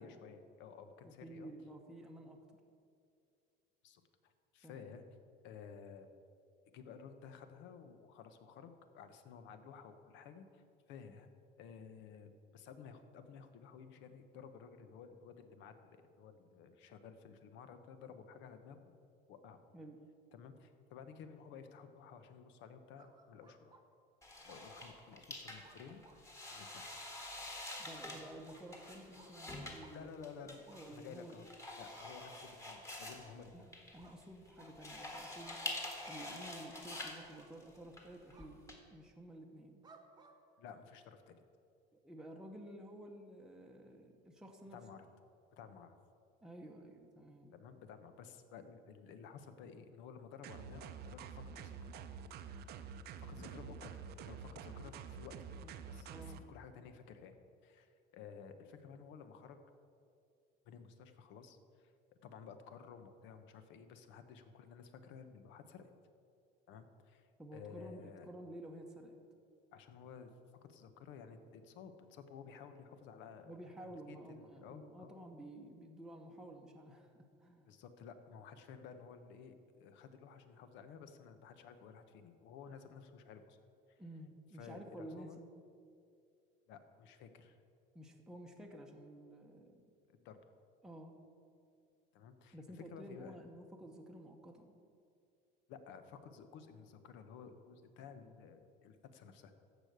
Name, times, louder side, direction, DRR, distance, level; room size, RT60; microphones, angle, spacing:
voice 1, 0.0-1.5 3.8-5.0 5.4-6.1 6.7-10.6 10.9-11.3 11.6-18.9 19.3-19.6 20.3-23.8 24.4-26.9 29.9-30.6 30.9-31.5 31.8-33.7 40.6-41.4 44.7-45.1 45.5-46.0 47.5-51.9 53.2-55.6 55.9-57.3 57.6-59.6 60.6-61.9 62.2-65.9 66.7-68.3 69.7-70.3 70.6-73.5 74.1-74.2 74.5-75.2 77.6-83.6 83.9-84.0 84.6-85.4 86.7-87.6 90.1-90.5 92.1-93.4 95.7-99.5, left 6 dB, 65° left, 9 dB, 1.1 m, -54 dB
voice 2, 1.0-2.4 4.6-4.9 19.7-20.0 27.8-30.1 30.7-31.4 33.5-33.7 33.9-35.6 36.1-38.6 38.9-39.8 42.0-44.8 46.4-47.6 53.4-53.7 55.6-55.7 56.0-56.5 67.4-69.2 73.4-77.7 84.0-85.5 87.9-89.8 90.8-91.2 92.5-94.8, right 1 dB, 5° right, 0 dB, 0.9 m, -52 dB
sound 1, 23.0-23.8 24.5-25.0 25.6-26.2 27.1-27.3 27.6-27.8 28.5-28.6 29.2-29.3 29.8-30.0 30.7-30.8 31.9-32.5 33.0-33.2 34.0-34.2 34.6-34.7 35.4-35.6 36.9-37.1 37.3-37.8 38.3-38.5 39.8-40.3, right 4 dB, 20° right, 1.1 m, -62 dB
sound 2, 24.2-38.7, left 2 dB, 15° left, 1.7 m, -47 dB
sound 3, 50.4-56.4, right 6 dB, 50° right, 0.7 m, -48 dB
14.5 x 5.1 x 8.0 m, 2.4 s
cardioid pair, 145°, 21 cm